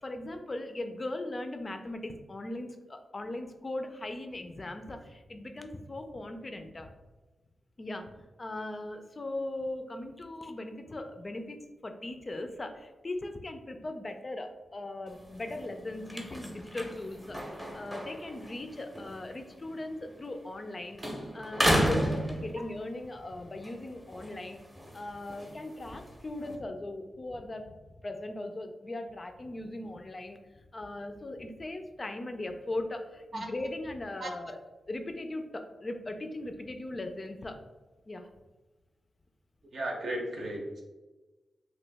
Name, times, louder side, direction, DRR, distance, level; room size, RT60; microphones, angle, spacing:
voice 1, 0.0-6.9 7.8-21.0 21.3-24.6 24.9-27.8 28.0-34.6 34.9-37.6 38.1-38.3, left 2 dB, 30° left, 6 dB, 0.3 m, -39 dB
sound 1, 15.1-20.7 21.0-23.0 23.5-26.6, equal, 5° right, 0.6 m, -34 dB
voice 2, 39.7-40.8, right 1 dB, 60° right, 1 dB, 0.7 m, -35 dB
2.9 x 2.4 x 3.4 m, 1.2 s
cardioid pair, 90°, 0 cm